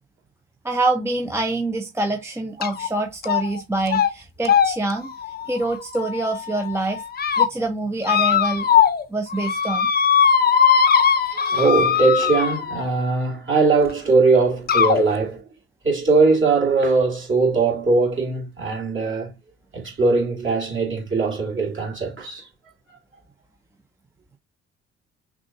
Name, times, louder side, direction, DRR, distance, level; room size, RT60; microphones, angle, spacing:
voice 1, 0.6-5.1 5.5-7.0 7.4-8.7 9.1-9.9, right 2 dB, 10° right, 0.6 m, -25 dB
sound 1, 2.6-2.9 3.2-3.6 3.9-4.1 4.4-6.4 6.9-7.5 8.0-9.0 9.3-12.9 13.9-14.0 14.7-15.0, left 7 dB, 30° left, 0.7 m, -19 dB
voice 2, 11.5-15.4 15.8-19.3 19.7-22.5, right 4 dB, 35° right, 2.6 m, -20 dB
5.9 x 2.4 x 2.9 m
figure-of-eight pair, 50°, 34 cm